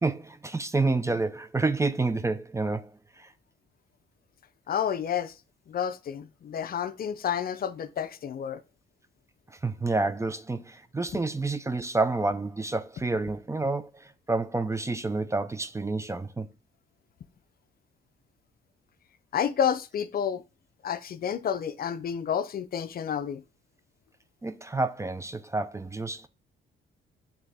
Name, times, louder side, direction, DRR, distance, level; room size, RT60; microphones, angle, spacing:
voice 1, 0.0-2.9 3.2-3.3 9.5-16.5 24.4-26.3, right 3 dB, 15° right, 0.5 m, -29 dB
voice 2, 4.7-5.4 5.7-8.6 19.3-20.4 20.8-23.4, left 8 dB, 50° left, 0.5 m, -30 dB
9.1 x 3.6 x 3.4 m
cardioid pair, 90°, 20 cm